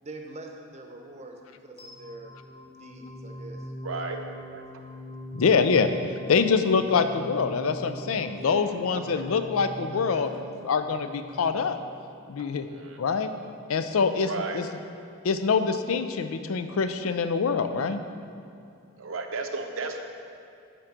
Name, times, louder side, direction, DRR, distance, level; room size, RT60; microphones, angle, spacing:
voice 1, 0.0-2.3 2.7-4.1 8.3-8.6 8.9-9.2 9.9-10.5, right 2 dB, 35° right, 3 dB, 0.7 m, -44 dB
sound 1, 1.8-12.7, equal, 25° left, 1.5 m, -43 dB
voice 2, 3.8-4.2 4.5-4.6 12.4-13.2 14.2-14.6 19.0-20.0, right 3 dB, 70° right, 4 dB, 0.7 m, -34 dB
voice 3, 5.3-5.9 6.3-10.3 10.7-11.8 12.3-12.7 13.0-13.3 13.7-14.7 15.2-18.0, left 5 dB, 85° left, 9 dB, 0.5 m, -25 dB
9.2 x 3.8 x 5.9 m, 2.5 s
head